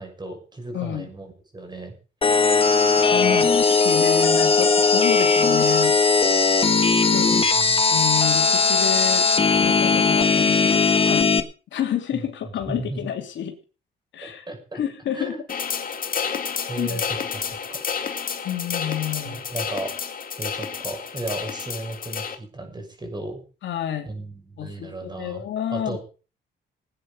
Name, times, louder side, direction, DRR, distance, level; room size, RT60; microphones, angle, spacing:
voice 1, 0.0-1.9 7.4-7.8 12.1-12.2 12.7-13.0 14.2-14.8 15.1-15.4 16.7-17.4 17.7-17.8 19.2-19.9 20.3-23.4 24.0-25.4 25.7-26.0, right 2 dB, 20° right, 4 dB, 6.4 m, -35 dB
voice 2, 0.7-1.1 3.0-6.0 7.1-7.5 7.9-9.3 9.6-11.4 11.7-13.5 14.1-14.5 14.7-15.3 16.8-17.0 18.4-19.4 23.6-24.1 24.6-26.0, left 10 dB, 70° left, 3 dB, 3.2 m, -29 dB
sound 1, 2.2-11.4, left 4 dB, 30° left, 1.5 m, -18 dB
sound 2, 15.5-22.3, left 6 dB, 45° left, 2.3 m, -30 dB
17.5 x 9.5 x 5.2 m, 0.36 s
cardioid pair, 90°, 20 cm